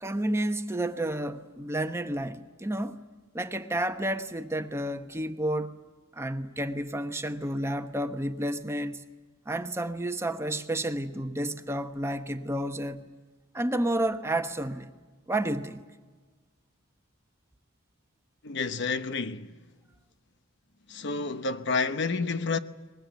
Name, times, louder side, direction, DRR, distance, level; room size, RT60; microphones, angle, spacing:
voice 1, 0.0-3.0 3.3-5.8 6.1-9.0 9.5-13.1 13.5-14.9 15.3-15.8, right 1 dB, 15° right, 1.0 m, -31 dB
voice 2, 18.4-19.7 20.9-22.6, left 4 dB, 60° left, 0.9 m, -30 dB
23.0 x 21.0 x 9.3 m
head